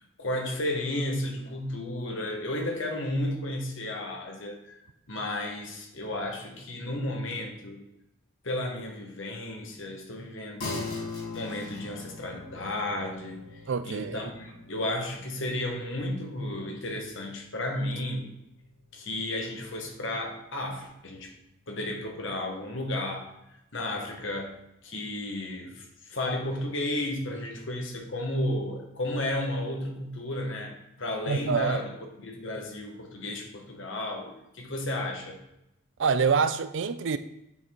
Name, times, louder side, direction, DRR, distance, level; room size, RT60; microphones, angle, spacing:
voice 1, 0.2-4.8 5.1-7.8 8.4-11.0 11.3-18.3 18.9-21.3 21.7-23.3 23.7-31.9 32.2-35.4, left 1 dB, 60° left, 1.3 m, -33 dB
sound 1, 10.6-20.3, left 3 dB, 85° left, 2.2 m, -42 dB
voice 2, 13.7-14.3 31.3-31.8 36.0-37.2, right 5 dB, 60° right, 0.4 m, -26 dB
7.8 x 4.1 x 4.5 m
head